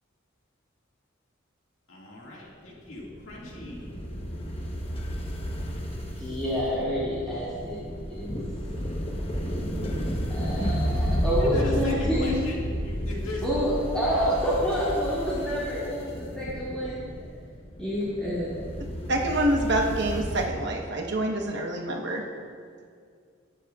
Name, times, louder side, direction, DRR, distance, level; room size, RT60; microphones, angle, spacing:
voice 1, 1.9-3.9 11.2-13.6, left 2 dB, 75° left, -4 dB, 2.0 m, -40 dB
sound 1, 2.9-20.5, equal, 30° left, 1.0 m, -32 dB
voice 2, 6.2-7.8 8.1-8.4 10.3-12.3 13.4-17.0 17.8-18.6, equal, 5° left, -11 dB, 2.2 m, -28 dB
voice 3, 19.1-22.2, right 1 dB, 60° right, 1 dB, 1.1 m, -26 dB
20.0 x 7.7 x 2.4 m, 2.2 s
head